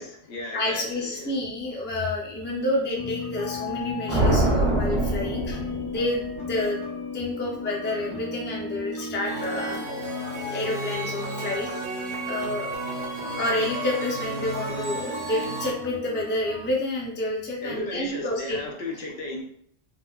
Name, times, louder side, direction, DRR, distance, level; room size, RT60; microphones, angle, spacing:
voice 1, 0.0-1.3 17.6-19.4, left 2 dB, 80° left, 0 dB, 0.9 m, -35 dB
voice 2, 0.5-6.8 7.1-9.9 10.5-11.7 12.3-12.7 13.4-18.6, left 1 dB, 15° left, -2 dB, 0.4 m, -29 dB
sound 1, 3.0-16.7, left 4 dB, 55° left, 0.6 m, -36 dB
sound 2, 4.1-6.4, right 1 dB, 85° right, 1.0 m, -24 dB
sound 3, 9.2-15.7, right 3 dB, 55° right, 0.6 m, -33 dB
3.6 x 2.1 x 2.3 m, 0.64 s
omnidirectional pair, 1.1 m